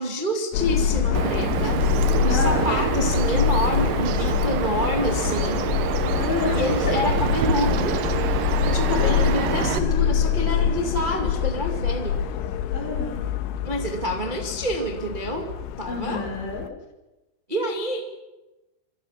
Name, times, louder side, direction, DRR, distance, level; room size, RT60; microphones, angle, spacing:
voice 1, 0.0-1.8 2.2-5.7 6.5-8.0 8.6-12.2 13.6-15.5 15.8-16.3 17.5-18.0, equal, 25° right, 2 dB, 0.9 m, -27 dB
Subway metro underground, 0.5-16.7, left 9 dB, 90° left, 3.5 m, -25 dB
Bird vocalization bird call bird song, 1.1-9.8, right 9 dB, 80° right, 1.9 m, -27 dB
voice 2, 2.3-2.7 6.1-7.0 8.9-9.4 12.7-13.2 15.9-16.7, left 3 dB, 65° left, 1 dB, 7.4 m, -29 dB
28.5 x 24.0 x 5.9 m, 1.0 s
omnidirectional pair, 5.5 m